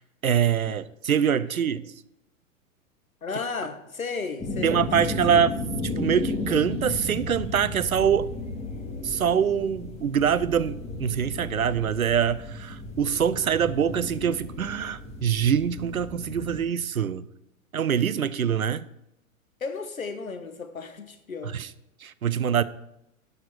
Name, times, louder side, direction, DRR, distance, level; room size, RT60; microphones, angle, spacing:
voice 1, 0.2-1.9 4.6-8.3 9.0-17.2 17.7-18.8 21.5-21.7 22.0-22.6, right 8 dB, 85° right, 0.6 m, -24 dB
voice 2, 3.2-5.5 19.6-21.6, left 4 dB, 80° left, 1.2 m, -34 dB
sound 1, 4.4-16.6, left 2 dB, 15° left, 2.0 m, -34 dB
11.5 x 6.6 x 4.7 m
figure-of-eight pair, 105°, 41 cm